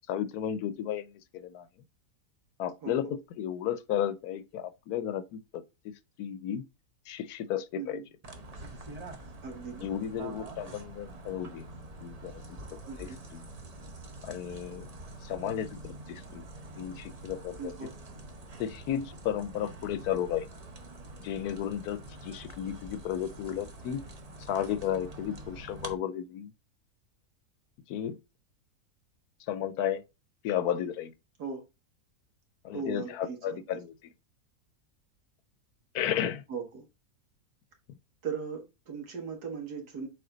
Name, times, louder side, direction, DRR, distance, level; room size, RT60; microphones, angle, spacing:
voice 1, 0.1-1.7 2.6-6.6 7.1-8.0 9.8-11.7 12.0-13.4 14.2-14.9 15.2-16.4 16.8-17.7 18.6-20.5 21.2-24.0 24.5-26.5 27.9-28.2 29.5-30.0 30.4-31.1 32.6-33.9 35.9-36.4, left 10 dB, 75° left, 1.1 m, -33 dB
voice 2, 2.8-3.1 7.7-8.1 9.4-10.1 12.9-13.2 17.6-17.9 31.4-31.6 32.7-33.8 36.5-36.8 38.2-40.1, right 5 dB, 75° right, 2.2 m, -38 dB
sound 1, 8.2-25.9, right 2 dB, 30° right, 0.8 m, -46 dB
6.7 x 4.2 x 3.8 m
omnidirectional pair, 1.7 m